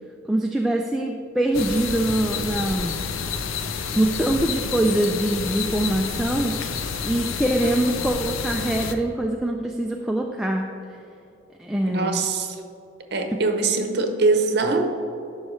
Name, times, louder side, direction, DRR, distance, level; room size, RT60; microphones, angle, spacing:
voice 1, 0.3-2.9 4.0-6.5 7.0-10.7 11.6-12.2, right 1 dB, ahead, 1 dB, 0.3 m, -23 dB
sound 1, 1.5-8.9, left 6 dB, 85° left, 0.5 m, -29 dB
voice 2, 11.9-12.6 13.1-14.9, right 3 dB, 55° right, 5 dB, 0.8 m, -22 dB
12.0 x 5.5 x 3.2 m, 2.7 s
head